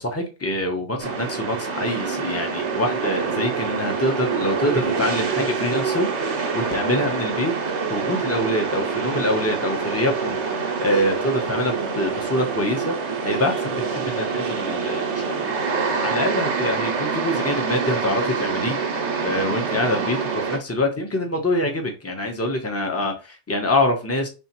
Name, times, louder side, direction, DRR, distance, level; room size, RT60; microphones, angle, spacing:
voice 1, 0.0-7.5 7.9-12.9 13.2-15.5 16.0-18.8 19.2-24.3, left 1 dB, 15° left, 0.9 m, -25 dB
sound 1, 1.0-20.6, right 5 dB, 75° right, 1.1 m, -26 dB
5.3 x 3.4 x 3.0 m
omnidirectional pair, 1.2 m